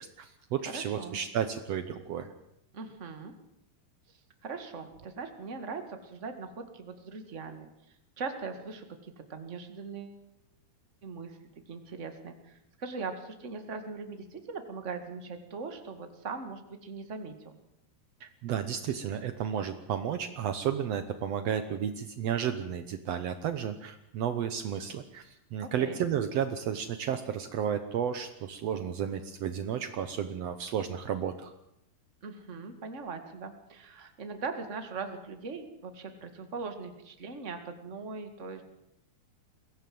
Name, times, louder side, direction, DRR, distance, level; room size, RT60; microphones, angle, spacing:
voice 1, 0.0-2.3 18.2-31.5, right 8 dB, 90° right, 9 dB, 1.4 m, -32 dB
voice 2, 0.6-1.2 2.7-3.3 4.4-10.2 11.0-11.4 11.7-17.6 25.6-26.0 32.2-38.6, right 4 dB, 30° right, 6 dB, 1.5 m, -40 dB
22.5 x 17.0 x 7.8 m, 0.82 s
omnidirectional pair, 4.4 m